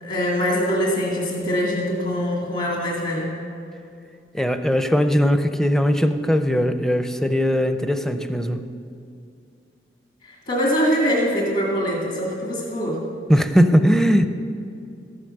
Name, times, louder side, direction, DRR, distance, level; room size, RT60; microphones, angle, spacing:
voice 1, 0.0-3.3 10.3-13.0, equal, 50° left, -2 dB, 2.1 m, -23 dB
voice 2, 4.3-8.6 13.3-14.3, equal, 5° left, 9 dB, 0.5 m, -19 dB
13.5 x 10.5 x 6.5 m, 2.5 s
head